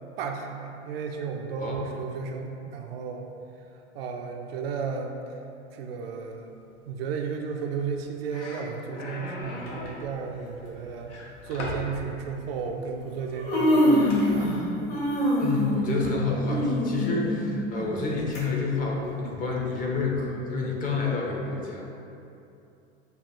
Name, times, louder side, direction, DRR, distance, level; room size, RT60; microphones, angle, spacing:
voice 1, 0.2-3.3 3.9-5.2 5.7-6.5 6.9-11.1 11.4-14.8 15.9-16.1, right 6 dB, 55° right, 2 dB, 0.5 m, -33 dB
sound 1, 7.8-8.0 8.3-10.0 11.1-11.9 14.1-14.4, left 2 dB, 80° left, 0.6 m, -38 dB
Human voice, 9.7-9.9 10.9-11.0 11.6-11.8 12.8-12.9 13.2-14.6 14.9-18.4 18.8-18.9 19.8-19.9, left 1 dB, 55° left, 1.2 m, -25 dB
voice 2, 15.4-22.0, left 3 dB, 25° left, -1 dB, 0.6 m, -29 dB
6.7 x 2.2 x 2.7 m, 2.7 s
figure-of-eight pair, 85°, 35 cm